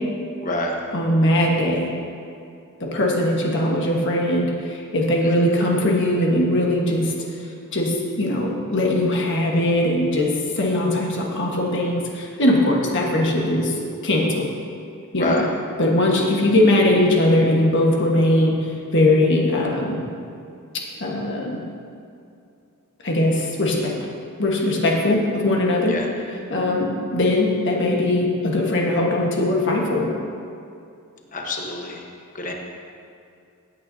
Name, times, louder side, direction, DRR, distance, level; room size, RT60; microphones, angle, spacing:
voice 1, 0.4-0.7 15.2-15.5 25.9-26.1 31.3-32.0 32.3-32.5, left 1 dB, 35° left, 0 dB, 1.2 m, -26 dB
voice 2, 0.9-1.9 2.8-7.1 7.7-13.7 14.0-14.5 15.1-15.4 15.8-20.0 21.0-21.6 23.0-23.9 24.4-26.0 26.5-30.1, left 1 dB, 55° left, -1 dB, 1.4 m, -20 dB
16.0 x 8.9 x 2.8 m, 2.5 s
head